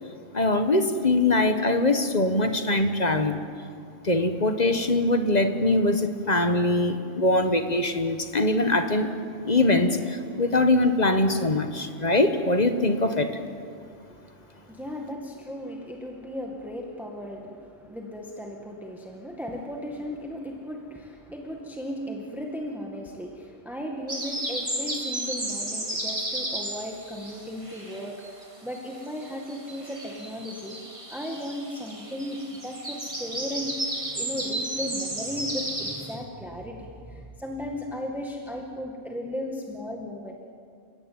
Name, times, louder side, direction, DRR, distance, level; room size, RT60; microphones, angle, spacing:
voice 1, 0.3-3.4 4.0-9.1 9.4-13.3, left 2 dB, 35° left, 8 dB, 1.4 m, -22 dB
voice 2, 13.7-30.8 31.1-40.3, equal, ahead, 1 dB, 2.0 m, -36 dB
sound 1, 24.1-28.4 28.7-36.2, right 1 dB, 25° right, 2.5 m, -33 dB
29.5 x 17.0 x 8.9 m, 2.3 s
omnidirectional pair, 1.3 m